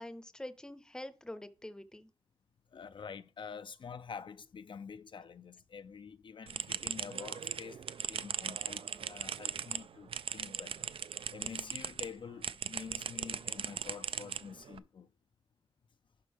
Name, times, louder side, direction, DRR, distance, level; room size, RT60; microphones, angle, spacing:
voice 1, 0.0-2.1, left 1 dB, 10° left, 0.6 m, -45 dB
voice 2, 2.7-10.9 11.3-15.1, left 6 dB, 60° left, 0.3 m, -47 dB
sound 1, 6.5-12.1 12.4-14.8, right 7 dB, 75° right, 0.4 m, -39 dB
11.5 x 4.2 x 3.4 m
wide cardioid pair, 130°, 9 cm